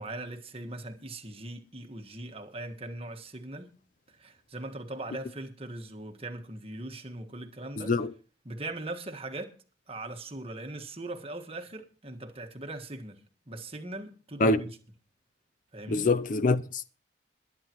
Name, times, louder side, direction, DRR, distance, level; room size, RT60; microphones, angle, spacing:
voice 1, 0.0-3.7 4.1-8.1 8.4-9.5 9.9-14.7 15.7-16.1, right 2 dB, 30° right, 1.5 m, -40 dB
voice 2, 15.9-16.9, left 3 dB, 40° left, 0.5 m, -24 dB
21.5 x 9.7 x 3.0 m
head